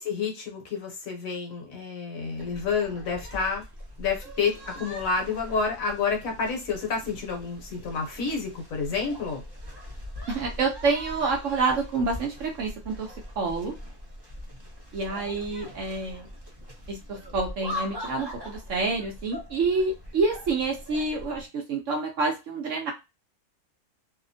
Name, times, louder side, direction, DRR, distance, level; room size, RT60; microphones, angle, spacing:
voice 1, 0.0-3.6 4.0-9.4, left 5 dB, 65° left, 2 dB, 1.1 m, -29 dB
sound 1, 2.4-21.5, left 1 dB, 30° right, 0.4 m, -41 dB
voice 2, 10.3-13.7 14.9-16.3 16.9-22.9, right 3 dB, 65° right, 1 dB, 0.9 m, -28 dB
2.7 x 2.0 x 2.6 m, 0.24 s
omnidirectional pair, 1.7 m